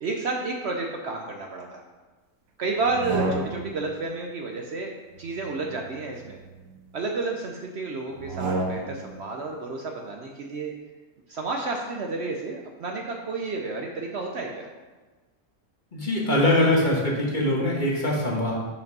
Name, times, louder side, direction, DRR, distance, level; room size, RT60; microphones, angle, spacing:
voice 1, 0.0-1.8 2.6-4.9 5.2-6.4 6.9-10.7 11.3-14.7, right 3 dB, 60° right, 1 dB, 0.8 m, -31 dB
sound 1, 2.8-3.9 5.2-6.8 8.1-9.1, right 2 dB, 85° right, 1.2 m, -32 dB
voice 2, 15.9-18.5, left 1 dB, 35° left, -3 dB, 1.4 m, -22 dB
5.3 x 5.2 x 5.3 m, 1.3 s
omnidirectional pair, 1.5 m